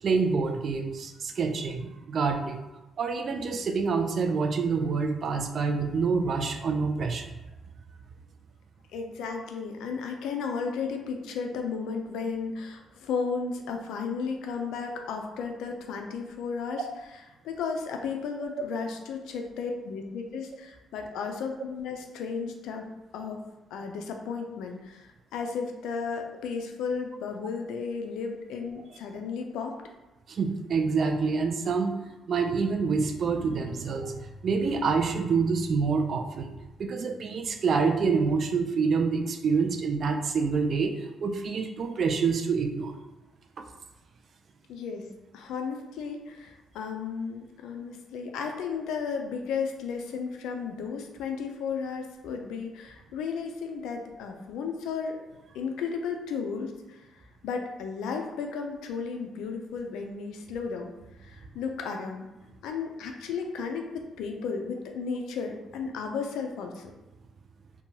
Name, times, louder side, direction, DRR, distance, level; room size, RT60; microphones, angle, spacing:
voice 1, 0.0-2.6 3.0-7.3 30.3-31.9 32.3-42.9 43.6-43.7, right 5 dB, 55° right, 5 dB, 0.3 m, -27 dB
voice 2, 8.9-22.8 23.1-23.4 23.7-29.7 44.7-45.0 45.3-55.2 55.5-57.1 57.4-60.9 61.2-62.3 62.6-66.9, left 5 dB, 85° left, 3 dB, 0.4 m, -34 dB
2.8 x 2.2 x 2.7 m, 1.0 s
cardioid pair, 90°, 0 cm